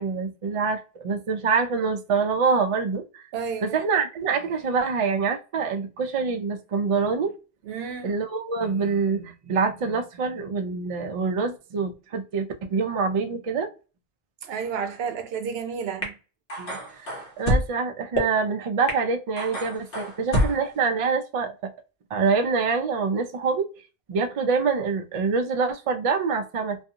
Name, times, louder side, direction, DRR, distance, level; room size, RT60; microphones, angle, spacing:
voice 1, 0.0-3.3 3.6-7.3 8.0-13.7 16.6-21.7 22.1-23.7 24.1-26.8, right 5 dB, 55° right, 0.3 m, -25 dB
voice 2, 3.3-3.8 7.6-8.1 14.4-16.1, right 6 dB, 80° right, 0.8 m, -31 dB
sound 1, 16.0-16.1 16.5-17.6 18.2-18.3 18.9-19.0 19.4-20.7, equal, 60° left, 1.1 m, -26 dB
2.5 x 2.3 x 2.7 m
omnidirectional pair, 1.0 m